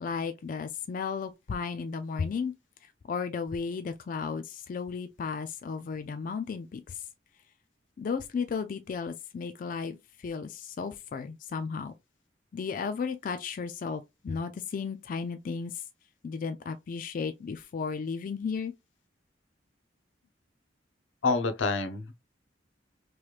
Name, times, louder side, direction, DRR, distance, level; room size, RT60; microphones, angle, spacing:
voice 1, 0.0-2.5 3.1-7.1 8.0-11.9 12.5-15.8 16.2-18.7, left 5 dB, 45° left, 0.3 m, -34 dB
voice 2, 21.2-22.1, left 4 dB, 90° left, 0.7 m, -27 dB
3.1 x 3.0 x 2.3 m
head